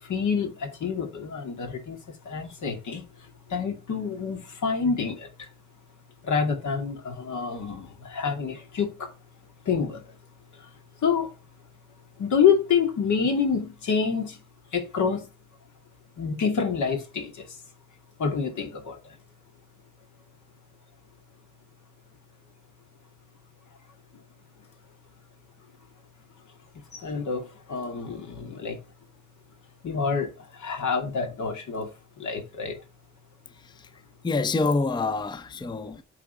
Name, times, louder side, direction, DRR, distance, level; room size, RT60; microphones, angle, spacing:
voice 1, 0.0-2.0 2.2-3.0 3.5-5.5 6.2-9.1 9.7-10.0 11.0-11.3 12.2-14.4 14.7-15.3 16.2-17.5 18.2-19.0 26.9-28.8 29.8-31.9 32.2-32.8, left 6 dB, 75° left, 2.4 m, -27 dB
voice 2, 33.5-33.9 34.2-36.0, left 3 dB, 15° left, 0.5 m, -27 dB
8.4 x 3.8 x 4.7 m
wide cardioid pair, 120°, 30 cm